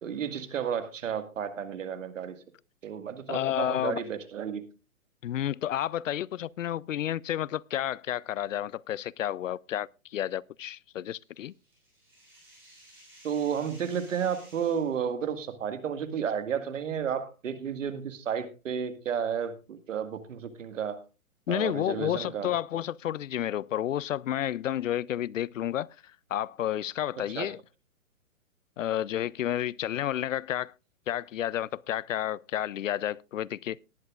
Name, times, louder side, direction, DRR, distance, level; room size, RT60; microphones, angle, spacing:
voice 1, 0.0-2.4 2.8-4.7 13.2-21.0 21.5-22.5 27.4-27.5, right 8 dB, 60° right, 1.9 m, -32 dB
voice 2, 3.3-4.0 5.2-11.5 21.5-26.0 26.3-27.6 28.8-30.7 31.1-33.8, left 11 dB, 65° left, 0.5 m, -31 dB
sound 1, 11.1-14.9, right 1 dB, 5° right, 6.8 m, -55 dB
19.0 x 10.5 x 2.4 m
hypercardioid pair, 150°, 42 cm